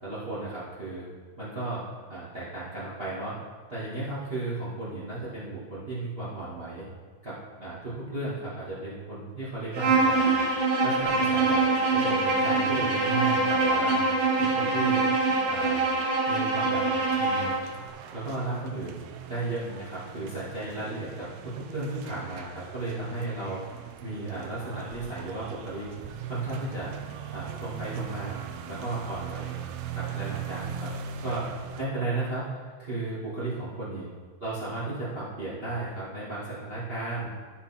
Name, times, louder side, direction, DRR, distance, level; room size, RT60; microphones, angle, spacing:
voice 1, 0.0-1.1 1.4-3.3 3.7-6.8 7.2-10.3 10.8-11.6 11.9-14.0 14.4-15.0 15.5-15.8 16.3-16.8 17.2-17.6 18.1-19.0 19.3-23.6 24.0-25.9 26.2-26.9 27.3-29.6 29.9-30.9 31.2-34.1 34.4-37.3, right 2 dB, 30° right, -8 dB, 1.0 m, -34 dB
Bowed string instrument, 9.7-17.6, right 3 dB, 55° right, 1.5 m, -24 dB
sound 1, 17.0-31.9, right 8 dB, 85° right, 2.6 m, -40 dB
14.0 x 5.6 x 4.4 m, 1.5 s
omnidirectional pair, 5.0 m